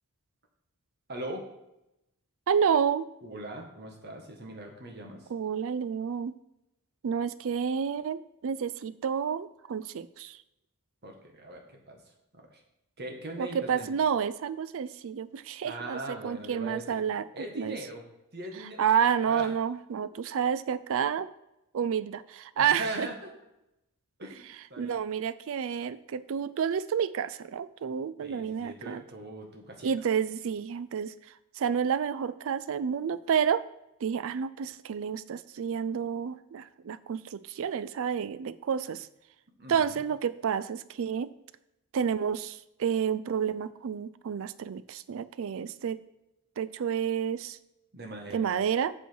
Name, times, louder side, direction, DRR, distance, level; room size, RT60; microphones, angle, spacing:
voice 1, 1.1-1.5 3.2-5.3 11.0-12.6 13.0-14.0 15.6-17.0 17.3-18.0 18.3-19.5 22.5-23.3 24.2-25.0 28.2-29.9 39.6-40.0 47.9-48.5, right 1 dB, 45° right, 2 dB, 1.6 m, -40 dB
voice 2, 2.5-3.1 5.3-6.4 7.0-10.4 13.4-17.3 17.6-17.8 18.8-21.3 21.7-23.1 24.8-29.0 29.8-31.1 31.6-33.6 34.0-39.1 39.7-41.3 41.9-46.0 46.6-47.6 48.3-48.9, right 7 dB, 65° right, 16 dB, 0.4 m, -30 dB
8.0 x 6.2 x 4.6 m, 0.90 s
head